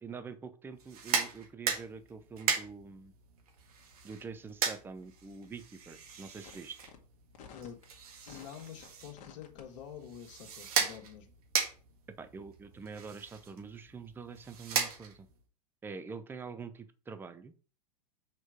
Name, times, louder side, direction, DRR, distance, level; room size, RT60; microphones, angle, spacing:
voice 1, 0.0-3.1 4.0-6.8 12.2-15.3 15.8-17.5, right 5 dB, 10° right, 0.6 m, -45 dB
sound 1, 0.8-15.4, right 6 dB, 65° right, 1.7 m, -37 dB
sound 2, 6.4-6.6 6.8-7.0 7.3-7.8 8.3-8.9 9.2-9.6, left 7 dB, 35° left, 1.6 m, -51 dB
voice 2, 8.3-11.3, left 9 dB, 50° left, 1.7 m, -47 dB
6.3 x 4.5 x 5.0 m
figure-of-eight pair, 100°, 21 cm